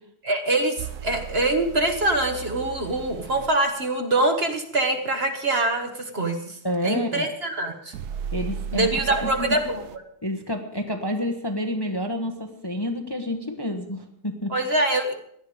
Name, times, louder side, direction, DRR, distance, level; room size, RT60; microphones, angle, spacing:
voice 1, 0.2-6.6 6.8-7.9 8.7-10.0 14.5-15.1, right 2 dB, 40° right, 5 dB, 1.5 m, -24 dB
sound 1, 0.8-3.6 7.9-10.0, right 7 dB, 75° right, 1.2 m, -36 dB
voice 2, 6.6-7.3 8.3-9.6 10.2-14.5, left 1 dB, 15° left, 4 dB, 1.0 m, -29 dB
17.0 x 11.5 x 5.0 m, 0.71 s
omnidirectional pair, 1.7 m